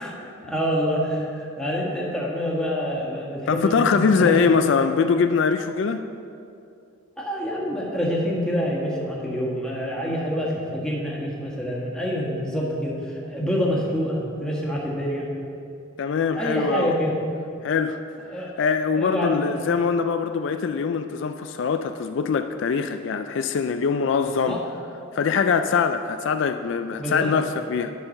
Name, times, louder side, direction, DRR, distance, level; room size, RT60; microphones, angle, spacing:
voice 1, 0.0-4.5 7.2-15.2 16.3-17.1 18.3-18.5 18.9-19.4 24.3-24.6 27.0-27.3, equal, 5° left, -5 dB, 1.5 m, -27 dB
voice 2, 3.5-6.0 16.0-16.9 17.6-18.0 18.6-24.6 25.1-27.9, left 5 dB, 65° left, 8 dB, 0.3 m, -22 dB
10.5 x 5.8 x 5.3 m, 2.5 s
head